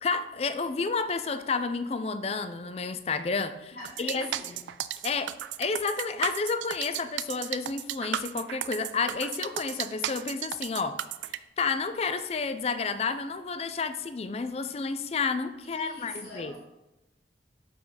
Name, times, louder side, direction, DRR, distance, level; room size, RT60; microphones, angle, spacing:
voice 1, 0.0-4.3 5.0-5.3 5.6-11.0 11.6-16.5, left 4 dB, 35° left, 10 dB, 0.4 m, -30 dB
voice 2, 3.7-4.8 15.6-16.6, left 2 dB, 55° left, -8 dB, 2.6 m, -44 dB
sound 1, 3.8-11.4, right 11 dB, 85° right, 0.3 m, -34 dB
7.1 x 4.9 x 3.9 m, 1.0 s
head